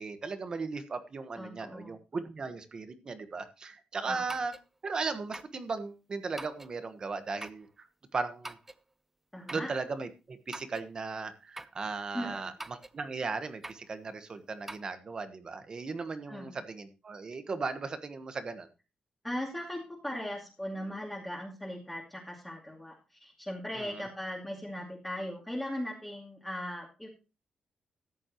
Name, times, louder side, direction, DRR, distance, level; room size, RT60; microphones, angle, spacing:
voice 1, 0.0-4.5 4.8-7.9 8.1-8.6 9.5-18.7 23.7-24.1, right 4 dB, 35° right, 9 dB, 1.3 m, -37 dB
voice 2, 1.4-2.0 4.1-4.2 9.3-9.7 12.1-12.5 16.3-16.6 19.2-27.1, left 1 dB, 5° left, -3 dB, 2.4 m, -38 dB
sound 1, 4.3-4.7 5.3-5.6 6.4-6.8 7.4-7.7 8.4-8.8 9.5-9.7 10.5-10.9 11.6-11.8 12.6-13.0 13.6-13.9 14.7-14.8, right 2 dB, 10° right, 0.5 m, -44 dB
14.0 x 9.7 x 3.0 m, 0.29 s
wide cardioid pair, 155°, 2 cm